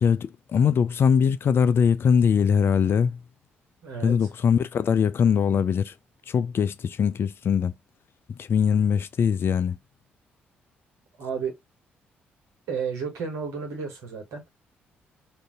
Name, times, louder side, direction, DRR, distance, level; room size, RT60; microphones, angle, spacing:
voice 1, 0.0-3.2 4.0-5.9 6.3-7.7 8.4-9.8, left 7 dB, 50° left, 0.3 m, -22 dB
voice 2, 3.8-4.1 11.2-11.5 12.7-14.4, right 6 dB, 70° right, 1.3 m, -32 dB
2.6 x 2.6 x 3.6 m
hypercardioid pair, 45°, 5 cm